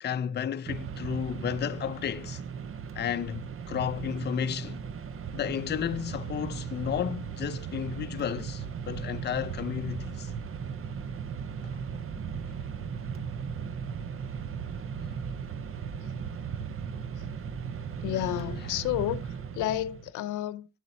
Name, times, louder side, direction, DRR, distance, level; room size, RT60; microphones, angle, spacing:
voice 1, 0.0-2.4 2.9-4.8 5.3-10.3 18.1-18.7, left 8 dB, 35° left, 0.5 m, -33 dB
Mechanisms, 0.7-20.1, right 6 dB, 45° right, 0.8 m, -37 dB
voice 2, 18.0-19.2 19.5-20.7, left 13 dB, 85° left, 0.7 m, -30 dB
11.5 x 7.4 x 2.7 m
cardioid pair, 90°, 30 cm